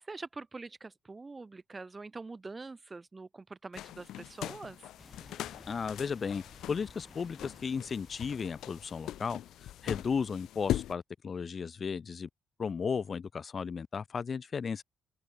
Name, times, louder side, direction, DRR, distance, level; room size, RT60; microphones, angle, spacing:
voice 1, 0.1-4.8, right 3 dB, 25° right, 0.3 m, -44 dB
sound 1, 3.7-10.9, left 13 dB, 80° left, 0.4 m, -40 dB
sound 2, 5.0-10.2, left 2 dB, 15° left, 1.5 m, -57 dB
voice 2, 5.7-12.3 12.6-14.8, left 6 dB, 40° left, 0.7 m, -35 dB
open air
cardioid pair, 90°, 0 cm